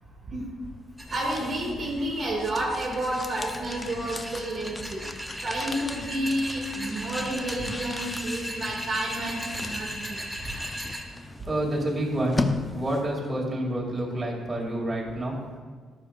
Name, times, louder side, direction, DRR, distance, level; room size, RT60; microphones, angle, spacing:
sound 1, 0.7-13.3, left 3 dB, 20° left, 0.4 m, -37 dB
sound 2, 1.0-11.0, equal, 5° right, 1.1 m, -38 dB
voice 1, 1.1-5.0 5.4-10.2, right 1 dB, 45° right, -5 dB, 1.8 m, -30 dB
voice 2, 11.1-15.4, right 1 dB, 25° right, -4 dB, 2.2 m, -29 dB
11.5 x 6.6 x 2.4 m, 1.5 s
cardioid pair, 90°, 0 cm